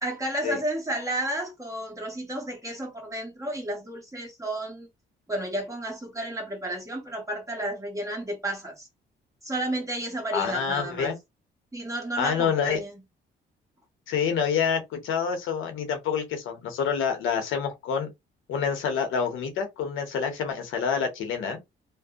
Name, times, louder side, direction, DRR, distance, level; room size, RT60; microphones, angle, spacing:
voice 1, 0.0-4.9 5.3-8.9 9.4-11.1 11.7-13.0, right 1 dB, 15° right, 1.1 m, -32 dB
voice 2, 10.3-11.2 12.2-12.8 14.1-18.1 18.5-21.6, left 6 dB, 85° left, 0.8 m, -27 dB
2.6 x 2.1 x 2.3 m
cardioid pair, 90°, 20 cm